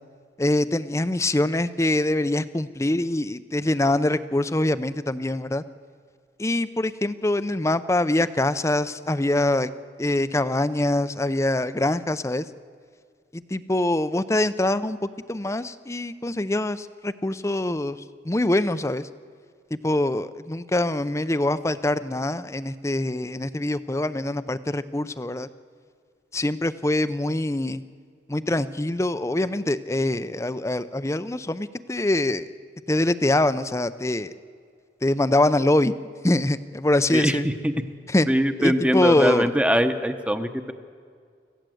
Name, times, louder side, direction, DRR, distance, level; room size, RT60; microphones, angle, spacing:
voice 1, 0.4-5.6 6.4-9.7 10.0-12.4 13.3-15.0 15.3-19.1 19.8-25.5 26.3-27.8 28.3-32.5 32.9-34.3 35.0-35.9 36.2-37.4 38.1-38.3 38.6-39.5, left 1 dB, 15° left, 13 dB, 0.6 m, -24 dB
voice 2, 37.1-37.7 38.3-40.7, equal, 5° right, 8 dB, 1.0 m, -22 dB
25.5 x 15.5 x 7.8 m, 2.1 s
head